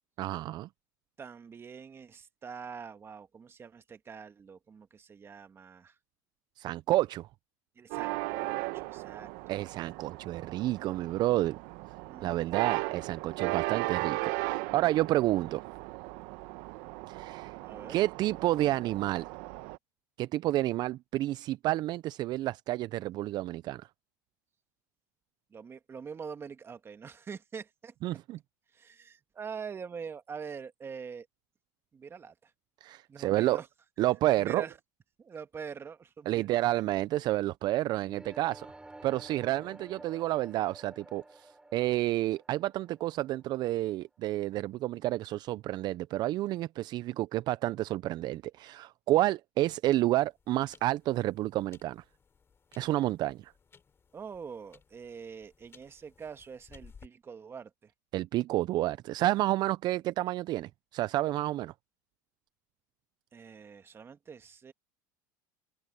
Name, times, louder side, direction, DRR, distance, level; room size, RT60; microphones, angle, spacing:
voice 1, 0.2-0.7 6.6-7.3 9.5-11.6 12.2-15.6 17.1-17.6 17.9-19.3 20.2-23.9 28.0-28.4 32.8-33.6 34.0-34.6 36.3-38.7 39.0-52.0 52.8-53.5 58.1-61.7, right 15 dB, 50° right, 0.5 m, -30 dB
voice 2, 1.2-5.9 7.7-9.3 12.1-12.3 17.7-17.9 25.5-27.9 28.7-31.3 31.9-32.5 33.1-33.7 34.3-34.7 35.2-36.5 39.6-39.7 54.1-57.9 63.3-64.7, right 6 dB, 25° right, 1.7 m, -44 dB
sound 1, 7.9-19.8, right 21 dB, 70° right, 1.1 m, -37 dB
sound 2, 38.0-43.9, right 2 dB, 10° right, 4.1 m, -51 dB
sound 3, 49.7-57.1, left 6 dB, 25° left, 5.2 m, -60 dB
open air
supercardioid pair, 110°, 10 cm